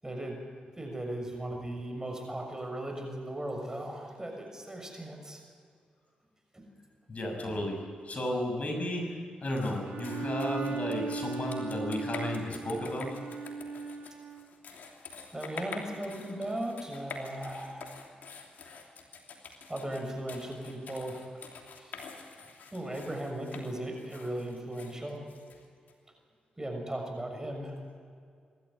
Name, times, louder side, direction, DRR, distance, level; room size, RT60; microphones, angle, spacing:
voice 1, 0.0-0.4 0.7-5.4 6.5-6.7 15.3-17.9 19.7-21.2 21.8-22.0 22.7-25.2 26.6-27.8, right 1 dB, 20° right, 3 dB, 6.5 m, -37 dB
voice 2, 7.1-9.2 9.4-13.2, left 1 dB, 50° left, 2 dB, 6.6 m, -33 dB
sound 1, 9.6-25.9, left 5 dB, 75° left, 3.0 m, -47 dB
Bowed string instrument, 9.9-14.6, right 5 dB, 80° right, 2.4 m, -38 dB
25.0 x 13.0 x 9.9 m, 2.2 s
supercardioid pair, 45°, 3 cm